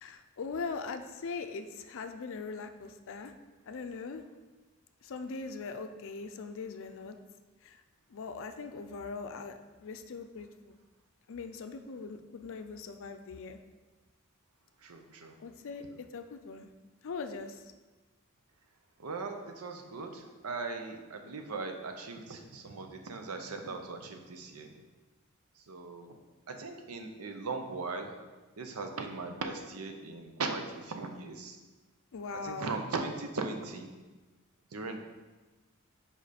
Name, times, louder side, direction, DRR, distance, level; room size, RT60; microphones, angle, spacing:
voice 1, 0.0-3.3 3.7-4.2 5.0-7.2 7.6-7.8 8.1-10.8 11.3-13.6 15.4-16.7 17.0-17.6 32.1-32.7, left 4 dB, 65° left, 8 dB, 0.5 m, -41 dB
voice 2, 14.8-15.4 15.9-16.0 19.0-24.7 25.5-26.2 26.5-28.1 28.6-31.6 32.4-33.9 34.7-35.0, right 3 dB, 85° right, 5 dB, 0.7 m, -39 dB
5.2 x 5.0 x 4.2 m, 1.2 s
head